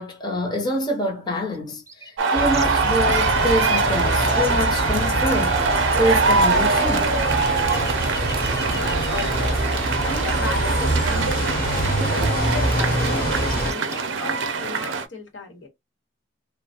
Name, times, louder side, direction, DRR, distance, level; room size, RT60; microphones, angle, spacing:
voice 1, 0.0-7.2, equal, 25° left, 0.7 m, -26 dB
sound 1, 1.5-1.6 1.9-3.2 4.4-4.8 5.2-9.3 10.2-11.5 11.9-12.6 12.8-14.5, right 3 dB, 15° right, 0.4 m, -39 dB
sound 2, 2.2-15.1, right 4 dB, 75° right, 0.5 m, -23 dB
sound 3, 2.3-13.7, equal, 55° left, 1.0 m, -25 dB
voice 2, 8.7-15.7, left 2 dB, 80° left, 1.0 m, -35 dB
3.2 x 2.1 x 2.7 m
head